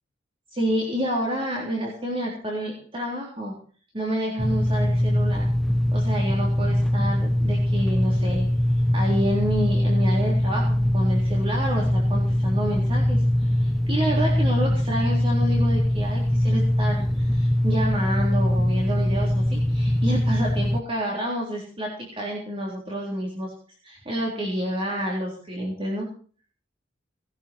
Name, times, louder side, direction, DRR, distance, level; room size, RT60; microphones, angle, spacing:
voice 1, 0.5-3.5 3.9-5.5 5.9-8.5 8.9-23.5 23.8-26.1, equal, 30° right, -3 dB, 3.7 m, -29 dB
sound 1, 4.4-20.8, left 1 dB, ahead, 0.6 m, -22 dB
19.5 x 12.0 x 4.6 m, 0.43 s
head